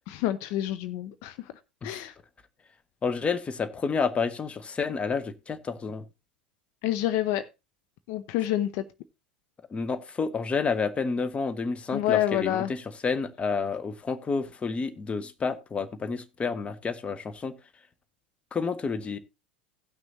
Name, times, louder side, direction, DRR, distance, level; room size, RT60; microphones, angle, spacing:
voice 1, 0.1-1.5 1.8-2.1 6.8-7.5 8.1-8.8 11.9-12.7, left 13 dB, 55° left, 0.6 m, -28 dB
voice 2, 3.0-6.0 9.7-17.5 18.5-19.2, left 5 dB, 25° left, 1.1 m, -30 dB
17.5 x 6.1 x 2.9 m
figure-of-eight pair, 80°, 5 cm